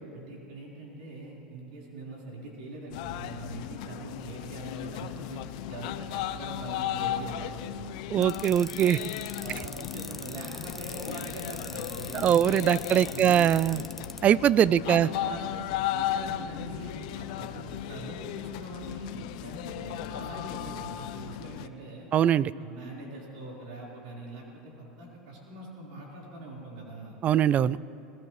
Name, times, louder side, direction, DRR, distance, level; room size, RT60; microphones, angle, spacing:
voice 1, 0.1-5.4 5.7-7.9 9.4-13.4 14.6-15.5 15.9-19.1 19.4-22.1 22.5-27.2, right 2 dB, 75° right, -4 dB, 4.5 m, -42 dB
jamaican street musician, 2.9-21.7, left 12 dB, 70° left, 0.6 m, -36 dB
voice 2, 8.1-9.0 12.2-13.8 14.2-15.1 22.1-22.5 27.2-27.8, right 10 dB, 35° right, 20 dB, 0.3 m, -22 dB
sound 1, 8.2-14.2, left 1 dB, 5° left, 0.7 m, -41 dB
21.5 x 19.0 x 3.2 m, 2.8 s
supercardioid pair, 105°, 4 cm